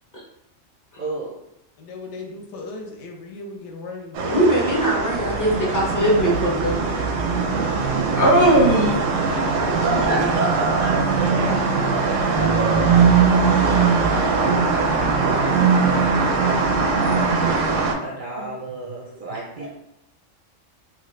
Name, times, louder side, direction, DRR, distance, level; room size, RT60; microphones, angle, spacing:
voice 1, 1.0-1.3 11.0-15.3 15.9-17.3 18.0-19.7, right 2 dB, 60° right, -3 dB, 0.5 m, -36 dB
voice 2, 1.8-4.2, left 3 dB, 70° left, 2 dB, 0.8 m, -36 dB
sound 1, 4.1-17.9, right 4 dB, 85° right, 0.9 m, -20 dB
voice 3, 4.3-7.5 8.2-9.0 9.7-10.2 18.3-18.4, right 1 dB, 20° left, -4 dB, 0.5 m, -20 dB
3.0 x 2.4 x 3.1 m, 0.83 s
omnidirectional pair, 1.3 m